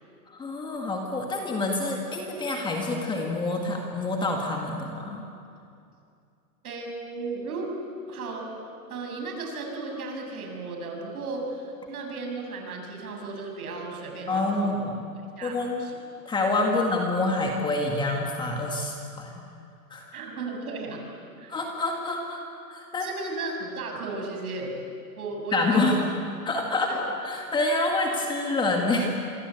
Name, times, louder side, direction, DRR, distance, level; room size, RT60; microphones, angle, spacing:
voice 1, 0.3-5.2 14.3-15.0 15.4-15.8 16.3-19.4 19.9-20.2 21.5-22.4 22.7-23.1 25.5-26.0 26.4-26.9 27.2-29.1, left 2 dB, 10° left, 1 dB, 1.9 m, -27 dB
voice 2, 6.6-7.8 8.1-8.5 8.9-14.8 15.4-15.9 20.1-21.0 21.4-21.6 23.0-24.8 25.2-26.1 26.9-27.0, right 3 dB, 60° right, 2 dB, 7.4 m, -35 dB
27.0 x 24.0 x 8.3 m, 2.5 s
hypercardioid pair, 150°, 49 cm